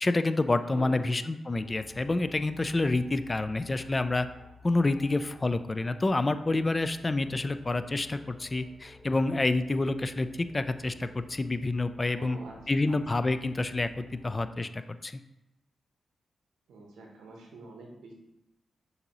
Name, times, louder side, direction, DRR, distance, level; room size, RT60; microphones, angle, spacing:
voice 1, 0.0-4.3 4.6-12.4 12.7-15.1, left 2 dB, 35° left, 11 dB, 0.3 m, -28 dB
voice 2, 0.7-1.2 12.0-12.9 16.7-18.1, right 2 dB, 85° right, 0 dB, 0.8 m, -46 dB
sound 1, 1.5-14.4, left 2 dB, 10° right, 0.7 m, -53 dB
6.5 x 2.7 x 3.0 m, 0.93 s
supercardioid pair, 45°, 0 cm